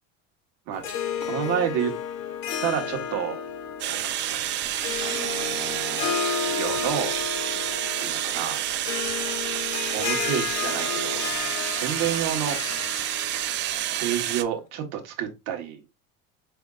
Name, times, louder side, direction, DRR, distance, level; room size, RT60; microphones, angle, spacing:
Harp, 0.7-14.5, left 8 dB, 80° left, 0.9 m, -33 dB
voice 1, 1.3-1.9 2.6-3.4 5.0-7.2 8.0-8.6 9.9-12.6 14.0-15.8, right 9 dB, 60° right, 1.3 m, -30 dB
sound 1, 3.8-14.4, right 13 dB, 40° right, 0.4 m, -29 dB
4.9 x 3.4 x 2.4 m
cardioid pair, 145°, 30 cm